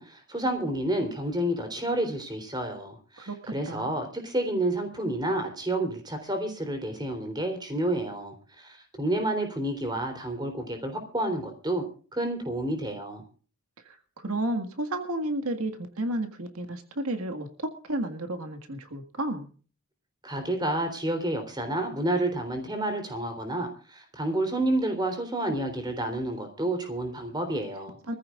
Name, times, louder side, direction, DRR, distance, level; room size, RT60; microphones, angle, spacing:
voice 1, 0.0-11.8 12.1-13.2 20.2-28.0, right 1 dB, 20° right, 6 dB, 3.5 m, -30 dB
voice 2, 3.3-4.1 13.9-19.5 28.1-28.2, right 1 dB, 80° right, 6 dB, 1.8 m, -32 dB
24.0 x 14.5 x 2.5 m, 0.38 s
head